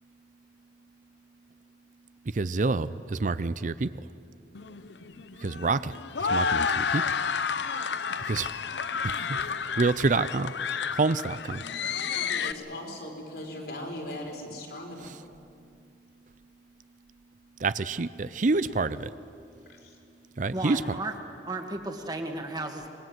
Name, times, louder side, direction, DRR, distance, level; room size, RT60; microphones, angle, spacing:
voice 1, 2.3-3.9 5.4-7.0 8.3-8.5 9.3-9.4 9.8-10.5 10.9-11.6 17.6-19.1 20.4-20.8, right 3 dB, 45° right, 15 dB, 0.5 m, -27 dB
sound 1, 4.5-12.5, left 6 dB, 85° left, 0.8 m, -30 dB
voice 2, 12.1-15.2 18.6-18.7 19.7-20.0, left 1 dB, 65° left, 0 dB, 4.7 m, -39 dB
voice 3, 20.5-21.1 21.5-22.9, right 2 dB, 25° right, 4 dB, 1.8 m, -34 dB
25.5 x 21.0 x 7.9 m, 2.5 s
head